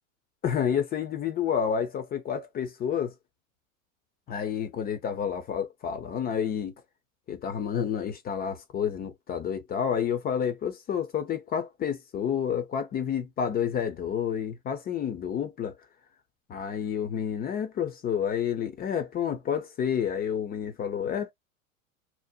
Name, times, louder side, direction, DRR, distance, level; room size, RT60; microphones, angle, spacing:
voice 1, 0.4-3.1 4.3-6.7 7.3-15.8 16.5-21.3, left 8 dB, 25° left, 0.5 m, -29 dB
2.7 x 2.0 x 2.3 m
hypercardioid pair, 95°, 40 cm